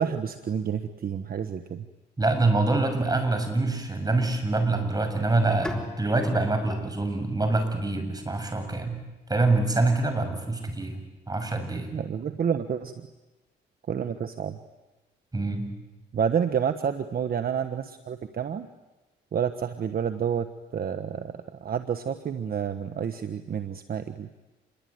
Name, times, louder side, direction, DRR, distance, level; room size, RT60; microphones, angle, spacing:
voice 1, 0.0-1.9 11.9-13.1 13.9-14.6 16.1-18.7 19.3-24.3, right 7 dB, 50° right, 8 dB, 1.3 m, -29 dB
voice 2, 2.2-9.0 9.3-11.9 15.3-15.7, right 2 dB, 20° right, 6 dB, 6.8 m, -25 dB
Bowed string instrument, 5.6-8.7, left 1 dB, 5° left, 3.6 m, -42 dB
28.0 x 22.5 x 9.5 m, 1.1 s
cardioid pair, 90°, 20 cm